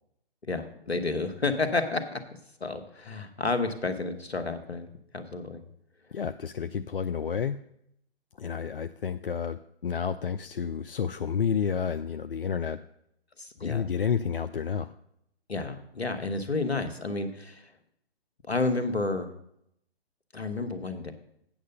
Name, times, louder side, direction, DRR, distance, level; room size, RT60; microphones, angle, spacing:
voice 1, 0.5-2.2 2.6-4.9 5.1-5.6 13.4-13.8 15.5-17.7 18.5-19.3 20.3-21.1, left 3 dB, 75° left, 8 dB, 1.4 m, -30 dB
voice 2, 6.1-7.6 8.4-12.8 13.6-14.9, left 7 dB, 60° left, 10 dB, 0.5 m, -30 dB
8.7 x 6.5 x 6.7 m, 0.74 s
figure-of-eight pair, 135°, 32 cm